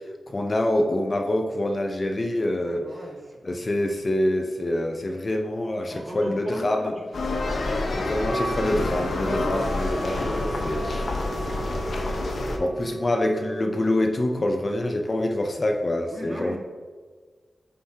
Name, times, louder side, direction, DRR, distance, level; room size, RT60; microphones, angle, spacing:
voice 1, 0.3-2.9 3.4-6.9 7.9-11.0 12.6-16.6, left 1 dB, 30° left, 3 dB, 0.6 m, -26 dB
voice 2, 2.6-4.2 5.9-8.0 10.4-11.9 12.8-12.9 16.1-16.6, equal, 35° right, -1 dB, 1.6 m, -40 dB
sound 1, 7.1-12.6, left 2 dB, 65° left, 0.9 m, -28 dB
Wind instrument woodwind instrument, 8.1-14.0, right 3 dB, 50° right, 2.4 m, -35 dB
9.2 x 6.9 x 2.8 m, 1.5 s
wide cardioid pair, 155°, 0 cm